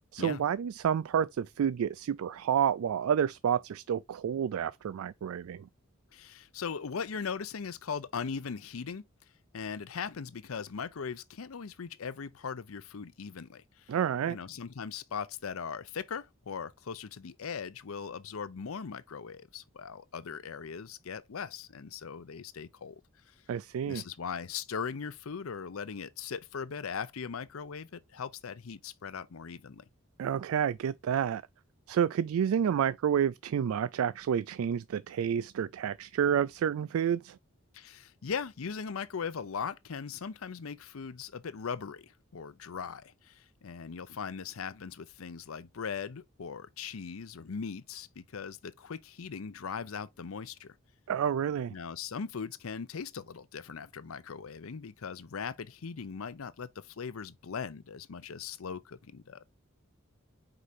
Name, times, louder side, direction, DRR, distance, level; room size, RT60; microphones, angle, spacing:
voice 1, 0.1-5.7 13.9-14.4 23.5-24.0 30.2-31.4 31.9-37.4 51.1-51.7, right 8 dB, 90° right, 0.3 m, -29 dB
voice 2, 6.1-9.0 9.5-13.9 14.3-23.0 23.9-29.9 37.7-50.7 51.7-59.4, left 6 dB, 90° left, 0.6 m, -39 dB
4.9 x 4.8 x 4.2 m
head